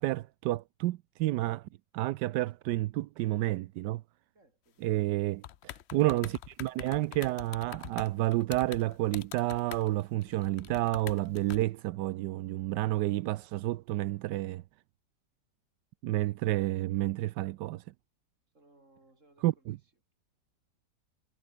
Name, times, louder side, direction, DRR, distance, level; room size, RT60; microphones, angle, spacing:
voice 1, 0.0-4.0 4.8-14.6 16.0-17.8 19.4-19.8, right 16 dB, 85° right, 1.2 m, -30 dB
voice 2, 4.3-5.1 16.2-16.9 18.5-19.9, right 2 dB, 45° right, 5.8 m, -65 dB
sound 1, 5.4-11.6, left 11 dB, 65° left, 0.6 m, -44 dB
omnidirectional pair, 1.8 m